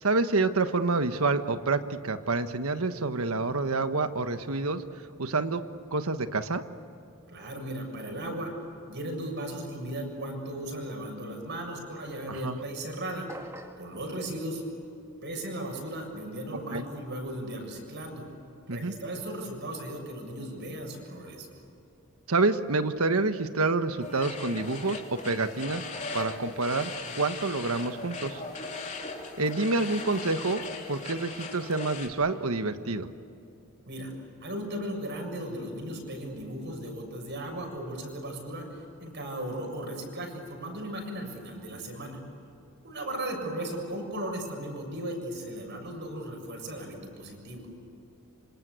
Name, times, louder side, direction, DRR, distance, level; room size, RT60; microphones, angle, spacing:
voice 1, 0.0-4.8 5.2-5.6 5.9-6.6 12.3-12.6 16.7-16.8 18.7-18.9 22.3-25.8 26.1-28.4 29.4-33.1, right 3 dB, 85° right, 9 dB, 1.4 m, -28 dB
voice 2, 7.3-8.5 8.9-13.3 13.8-14.6 15.2-18.2 18.7-21.5 33.9-34.1 34.4-42.2 42.8-47.7, right 1 dB, 55° right, 2 dB, 7.2 m, -36 dB
sound 1, 13.3-13.9, right 1 dB, 15° right, 2.1 m, -43 dB
sound 2, 24.0-32.1, left 3 dB, 35° left, 3.3 m, -39 dB
26.5 x 25.5 x 8.3 m, 2.8 s
head